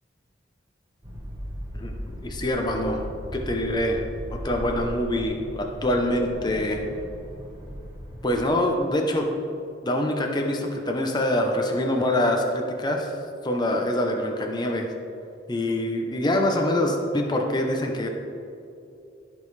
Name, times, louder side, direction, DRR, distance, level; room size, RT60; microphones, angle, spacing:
sound 1, 1.0-8.4, equal, 20° right, 1.4 m, -37 dB
voice 1, 1.7-3.0 3.3-4.0 4.3-6.8 8.2-9.3 9.8-13.1 13.4-14.9 15.5-18.1, left 1 dB, 20° left, 2 dB, 0.7 m, -25 dB
15.0 x 5.3 x 3.3 m, 2.6 s
head